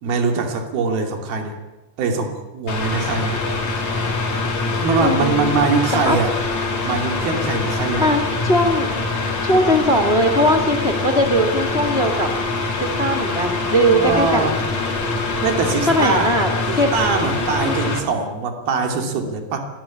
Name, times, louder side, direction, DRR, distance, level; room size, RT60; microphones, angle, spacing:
voice 1, 0.0-1.6 2.0-3.4 4.8-6.3 6.8-8.1 13.9-14.6 15.4-16.3 16.7-19.6, right 4 dB, 65° right, 4 dB, 4.5 m, -22 dB
Mechanical fan, 2.7-18.0, left 3 dB, 45° left, 4.6 m, -24 dB
voice 2, 5.0-5.5 5.9-6.2 8.0-9.0 9.4-12.3 12.8-14.6 15.9-16.5 16.8-16.9 17.6-17.8, equal, 25° left, 7 dB, 1.3 m, -19 dB
25.0 x 18.5 x 8.7 m, 1.1 s
omnidirectional pair, 4.8 m